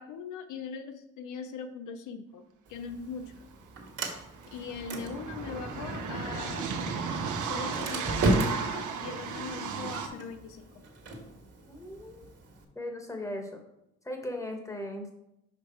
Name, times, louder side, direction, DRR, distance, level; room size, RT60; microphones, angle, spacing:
voice 1, 0.0-3.5 4.5-6.7 7.4-10.8, left 5 dB, 80° left, 8 dB, 0.6 m, -41 dB
Sliding door, 2.7-12.6, right 2 dB, 55° right, 1.6 m, -35 dB
sound 1, 3.6-3.7 3.8-10.1, right 6 dB, 75° right, 1.0 m, -35 dB
voice 2, 11.6-12.3 12.7-13.6 14.0-15.1, left 1 dB, 10° left, 3 dB, 1.3 m, -38 dB
5.4 x 5.2 x 4.5 m, 0.84 s
cardioid pair, 90°, 30 cm